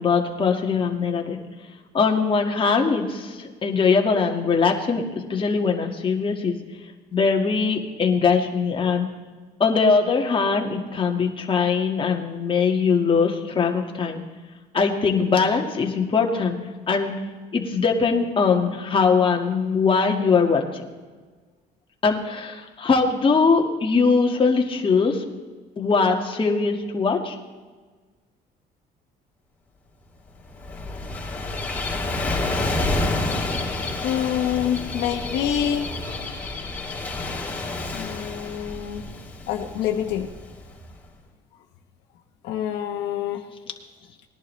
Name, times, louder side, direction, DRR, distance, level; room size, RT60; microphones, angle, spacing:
voice 1, 0.0-1.4 1.9-6.5 7.1-9.1 9.6-14.2 14.7-16.6 16.9-17.2 17.5-20.8 22.0-25.3 25.8-27.4, left 5 dB, 30° left, 2 dB, 1.7 m, -21 dB
Gull seagull / Waves surf, 30.3-40.9, left 2 dB, 10° left, 3.8 m, -29 dB
voice 2, 34.0-35.9 37.9-39.0 39.5-40.3 42.4-43.4, left 10 dB, 85° left, 4 dB, 1.0 m, -26 dB
19.5 x 11.0 x 3.2 m, 1.4 s
cardioid pair, 110°, 17 cm